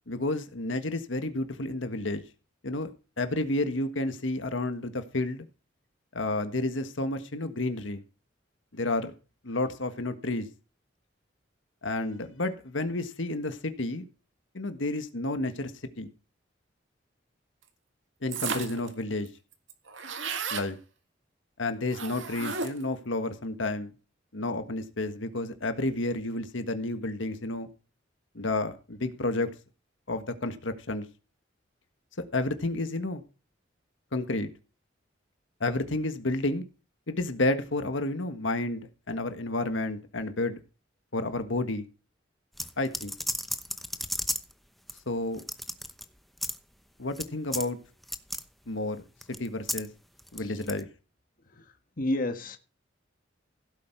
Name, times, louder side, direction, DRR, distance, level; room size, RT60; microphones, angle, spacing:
voice 1, 0.1-2.2 2.6-2.9 3.2-5.4 6.1-8.0 8.7-9.1 9.4-10.5 11.8-14.0 14.5-15.7 16.0-16.1 18.2-19.3 20.5-20.8 21.6-23.9 24.3-27.7 28.3-29.5 30.1-31.1 32.3-33.2 34.1-34.5 35.6-36.6 37.1-40.6 41.1-41.9 42.8-43.1 45.1-45.4 47.0-47.8 48.7-49.0 49.3-49.9 50.3-50.9, left 2 dB, 80° left, 1.5 m, -30 dB
sound 1, 18.3-18.9 19.3-19.4 19.5-20.7 21.9-22.9, right 5 dB, 80° right, 2.0 m, -34 dB
sound 2, 42.6-44.5 44.9-45.0 45.3-46.0 46.4-46.6 47.1-47.3 47.5-47.7 48.0-48.4 49.2-49.9 50.2-50.8, equal, ahead, 0.9 m, -33 dB
voice 2, 51.4-52.6, left 1 dB, 50° left, 1.6 m, -32 dB
16.0 x 8.7 x 4.6 m
head